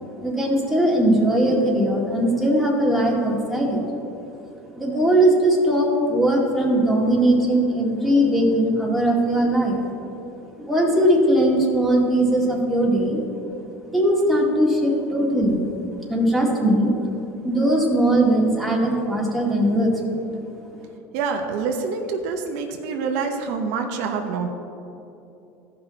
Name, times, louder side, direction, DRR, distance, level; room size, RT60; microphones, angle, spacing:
voice 1, 0.2-3.8 4.7-9.8 10.6-13.2 13.9-15.7 16.1-16.9 17.4-20.2, right 1 dB, ahead, -3 dB, 2.0 m, -19 dB
voice 2, 21.1-24.5, right 5 dB, 75° right, 4 dB, 0.9 m, -26 dB
14.5 x 5.6 x 4.1 m, 2.9 s
supercardioid pair, 110°, 8 cm